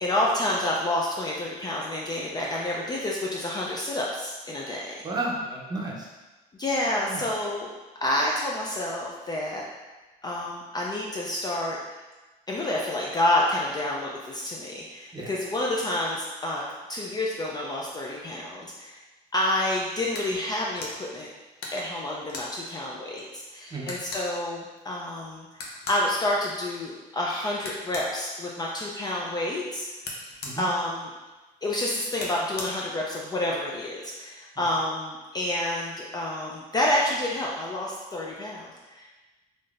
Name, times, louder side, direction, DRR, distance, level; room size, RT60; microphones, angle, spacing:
voice 1, 0.0-4.9 6.6-7.7 8.0-9.6 10.2-11.8 12.5-16.6 16.9-19.0 19.3-21.3 21.7-25.5 25.9-29.9 30.6-31.1 31.6-39.1, left 1 dB, 25° left, -3 dB, 0.4 m, -29 dB
voice 2, 5.0-6.1 7.1-7.2 15.1-15.3 23.7-23.9 30.4-30.7, right 2 dB, 25° right, -2 dB, 0.6 m, -32 dB
sound 1, 20.2-20.3 20.7-21.0 21.6-22.5 23.2-23.3 23.5-23.6 23.9-24.3 25.5-26.0 27.6-28.1 30.0-30.6 32.1-32.7, left 2 dB, 70° left, 0.6 m, -37 dB
3.4 x 2.6 x 2.4 m, 1.2 s
cardioid pair, 110°, 17 cm